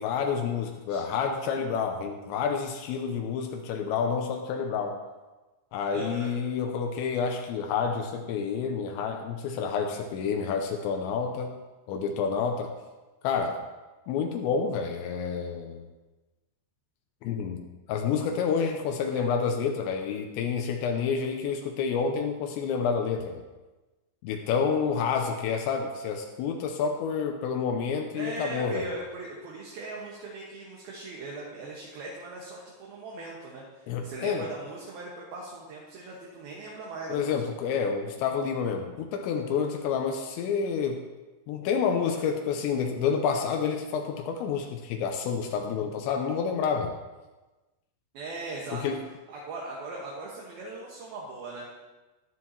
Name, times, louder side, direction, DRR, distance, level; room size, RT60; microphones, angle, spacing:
voice 1, 0.0-5.0 5.7-11.5 11.9-12.7 13.2-13.6 14.1-15.9 17.2-17.6 17.9-23.4 24.2-28.9 33.9-34.5 37.1-41.0 41.5-46.9 48.7-49.0, left 6 dB, 85° left, 3 dB, 3.0 m, -29 dB
voice 2, 5.9-6.3 19.1-19.2 24.8-25.2 28.1-37.4 48.1-48.8 49.3-51.7, right 3 dB, 65° right, -3 dB, 2.9 m, -39 dB
14.0 x 11.0 x 2.9 m, 1.2 s
omnidirectional pair, 5.2 m